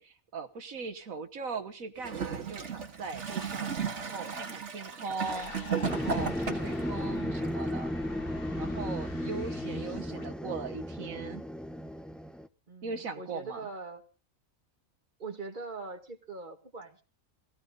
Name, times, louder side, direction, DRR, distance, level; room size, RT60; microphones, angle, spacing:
voice 1, 0.0-7.9 8.6-11.4 12.8-13.7, right 4 dB, 75° right, 8 dB, 1.7 m, -40 dB
Gurgling / Toilet flush, 2.0-6.8 7.7-7.8, right 6 dB, 55° right, 2.0 m, -35 dB
sound 1, 5.2-10.3, left 4 dB, 45° left, 1.6 m, -45 dB
sound 2, 5.8-12.5, equal, ahead, 0.5 m, -35 dB
voice 2, 12.7-14.0 15.2-17.0, right 3 dB, 35° right, 4 dB, 2.4 m, -42 dB
19.0 x 17.0 x 3.9 m, 0.35 s
omnidirectional pair, 1.4 m